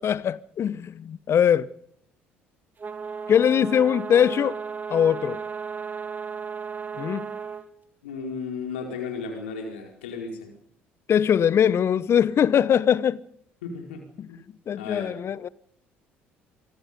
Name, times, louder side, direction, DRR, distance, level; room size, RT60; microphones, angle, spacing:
voice 1, 0.0-1.7 3.3-4.6 4.9-5.4 7.0-7.3 11.1-13.2 14.2-14.3 14.7-15.5, left 8 dB, 45° left, 1.0 m, -21 dB
sound 1, 2.8-7.6, right 6 dB, 30° right, 3.1 m, -34 dB
voice 2, 8.0-10.5 13.6-14.0 14.3-14.4 14.8-15.2, left 5 dB, 80° left, 4.7 m, -34 dB
26.0 x 22.0 x 5.3 m
figure-of-eight pair, 55°, 6 cm